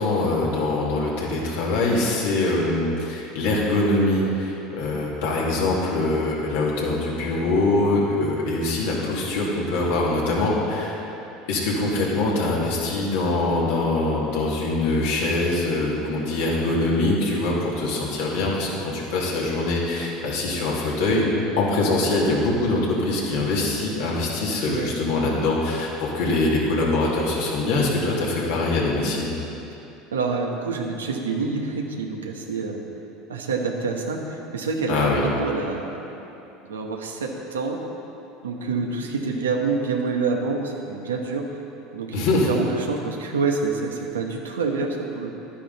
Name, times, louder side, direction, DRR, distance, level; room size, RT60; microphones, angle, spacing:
voice 1, 0.0-11.0 11.5-21.3 21.6-29.3 34.9-35.2 42.1-42.5, left 2 dB, 75° left, -4 dB, 2.4 m, -23 dB
voice 2, 30.1-32.8 33.3-36.1 36.6-37.8 38.4-41.4 41.9-45.3, right 4 dB, 90° right, 2 dB, 1.1 m, -27 dB
12.0 x 9.9 x 4.1 m, 3.0 s
hypercardioid pair, 80°, 0 cm